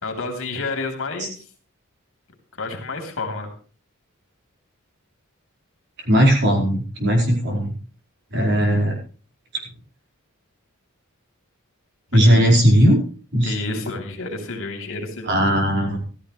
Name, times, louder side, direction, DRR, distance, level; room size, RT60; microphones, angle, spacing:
voice 1, 0.0-1.4 2.6-3.5 12.1-12.5 13.4-15.4, left 3 dB, 65° left, 4 dB, 3.3 m, -30 dB
voice 2, 6.1-7.8 8.3-9.0 12.1-13.0 13.3-13.5 15.3-16.0, equal, 55° right, 1 dB, 4.7 m, -17 dB
15.0 x 14.0 x 3.3 m, 0.38 s
head